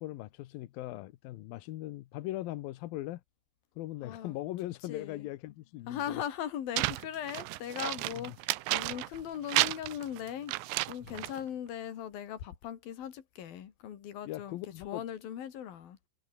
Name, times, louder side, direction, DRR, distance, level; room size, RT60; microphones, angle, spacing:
voice 1, 0.0-3.2 3.8-6.2 8.1-8.4 11.0-11.3 14.3-15.0, left 16 dB, 75° left, 2.2 m, -40 dB
voice 2, 4.0-4.4 4.9-5.3 5.9-8.3 8.7-10.5 10.9-14.6 14.9-16.0, left 10 dB, 60° left, 3.7 m, -39 dB
sound 1, 6.8-9.2 9.5-11.4, right 19 dB, 85° right, 3.1 m, -32 dB
omnidirectional pair, 5.2 m